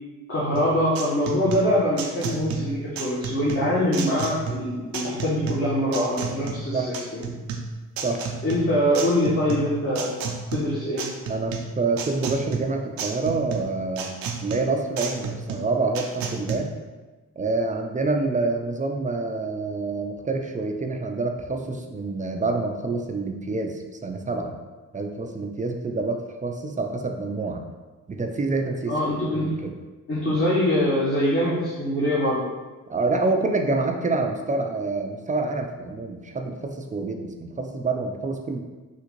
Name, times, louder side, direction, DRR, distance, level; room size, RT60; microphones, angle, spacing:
voice 1, 0.3-7.2 8.4-10.2 10.5-11.1 28.9-29.5 30.1-32.5, equal, 35° left, -8 dB, 1.1 m, -23 dB
sound 1, 0.6-16.6, right 5 dB, 65° right, 0.6 m, -32 dB
voice 2, 11.3-14.1 14.4-16.7 17.4-24.5 24.9-27.6 28.1-28.9 29.4-29.7 32.9-38.6, right 3 dB, 20° right, 3 dB, 0.5 m, -27 dB
3.7 x 2.5 x 3.0 m, 1.2 s
hypercardioid pair, 45°, 38 cm